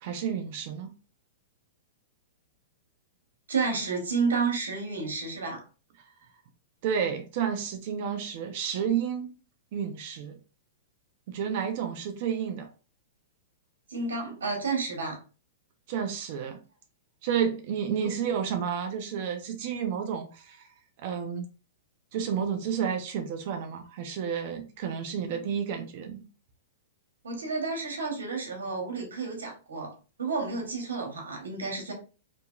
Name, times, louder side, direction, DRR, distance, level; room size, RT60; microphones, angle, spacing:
voice 1, 0.0-0.9 6.8-9.3 9.7-10.4 11.3-12.7 15.9-16.6 17.2-20.7 21.0-21.4 22.1-26.3, right 8 dB, 50° right, 0.5 m, -31 dB
voice 2, 3.5-5.6 13.9-15.2 18.0-18.1 27.2-29.9 30.2-31.9, right 4 dB, 90° right, 1.1 m, -31 dB
2.9 x 2.6 x 2.3 m
hypercardioid pair, 135°, 0 cm